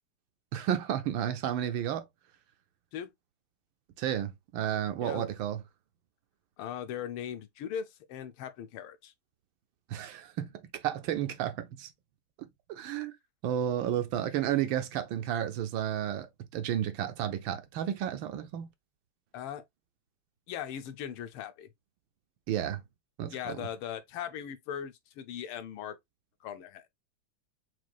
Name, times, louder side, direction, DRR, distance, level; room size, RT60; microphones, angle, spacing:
voice 1, 0.5-2.1 4.0-5.6 9.9-10.5 10.7-11.9 12.7-13.1 13.4-18.7 22.5-22.8 23.2-23.7, right 10 dB, 75° right, 1.2 m, -32 dB
voice 2, 6.6-9.1 19.3-19.6 20.5-21.7 23.3-26.0 26.4-26.9, left 9 dB, 80° left, 1.5 m, -39 dB
6.0 x 2.3 x 2.5 m
omnidirectional pair, 2.3 m